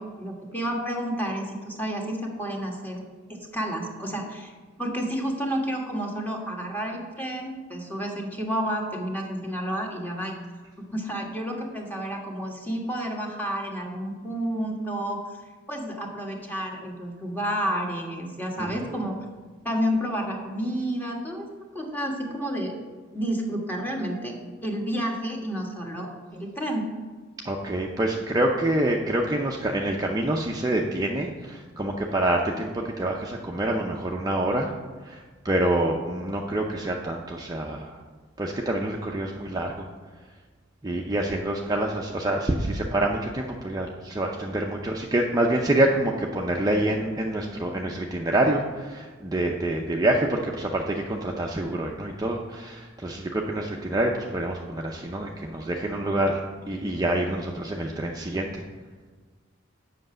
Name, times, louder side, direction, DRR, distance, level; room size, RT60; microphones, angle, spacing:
voice 1, 0.0-3.0 3.5-4.5 4.8-10.3 10.9-15.4 15.7-19.3 19.6-21.5 21.7-22.7 23.1-24.3 24.6-26.9, equal, 10° left, 0 dB, 1.5 m, -30 dB
voice 2, 27.4-34.7 35.0-38.0 38.4-39.9 40.8-58.6, right 1 dB, 20° right, 0 dB, 0.6 m, -26 dB
7.8 x 5.9 x 7.6 m, 1.4 s
head